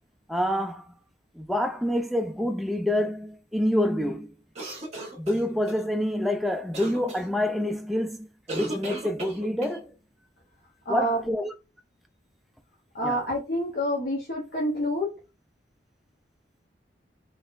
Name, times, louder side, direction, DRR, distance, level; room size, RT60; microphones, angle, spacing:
voice 1, 0.3-0.9 1.4-4.3 5.2-9.9 10.9-11.5 13.0-13.2, left 1 dB, ahead, 0.4 m, -27 dB
sound 1, 4.5-5.8 6.7-7.2 8.5-9.8, right 1 dB, 40° right, 1.3 m, -36 dB
voice 2, 10.8-11.2 12.9-15.1, equal, 55° left, 1.0 m, -27 dB
3.7 x 3.0 x 2.5 m
head